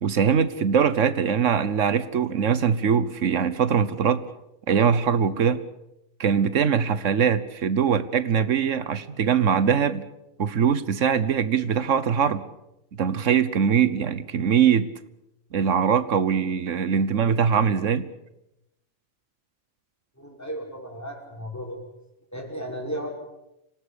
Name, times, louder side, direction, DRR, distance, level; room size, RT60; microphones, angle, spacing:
voice 1, 0.0-4.2 4.7-5.6 6.2-10.0 10.4-12.4 13.0-14.9 15.5-18.1, right 7 dB, 85° right, 14 dB, 1.4 m, -22 dB
voice 2, 20.2-21.8 22.3-23.1, equal, 15° left, 0 dB, 5.8 m, -34 dB
26.5 x 18.0 x 8.4 m, 0.88 s
omnidirectional pair, 1.2 m